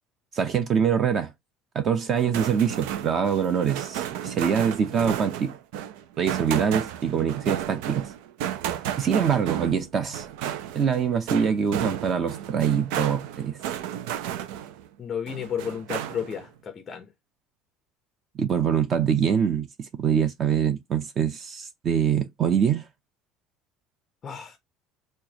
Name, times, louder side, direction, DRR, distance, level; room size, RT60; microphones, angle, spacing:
voice 1, 0.3-1.3 1.7-5.6 6.2-8.1 9.0-10.2 10.7-13.6 18.4-19.7 20.0-22.8, right 7 dB, 30° right, 0.6 m, -24 dB
sound 1, 2.1-14.9 15.3-16.4, right 10 dB, 85° right, 0.6 m, -33 dB
voice 2, 15.0-17.1 24.2-24.6, left 8 dB, 25° left, 0.5 m, -32 dB
4.4 x 2.5 x 2.7 m
cardioid pair, 170°, 0 cm